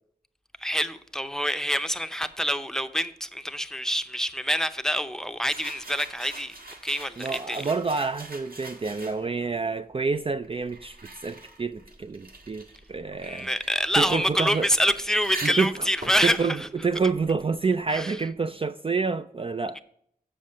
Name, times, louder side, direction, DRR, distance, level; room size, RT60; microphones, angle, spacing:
voice 1, 0.6-6.5 6.8-7.6 13.2-16.7 17.9-18.2, equal, 5° left, 0.6 m, -26 dB
sound 1, 5.5-9.5 10.2-17.6, right 2 dB, 65° right, 1.7 m, -43 dB
voice 2, 7.2-11.0 11.2-13.5 14.0-14.7 15.4-15.9 16.2-19.8, right 4 dB, 35° right, 0.3 m, -28 dB
7.4 x 7.2 x 6.4 m
wide cardioid pair, 65°, 16 cm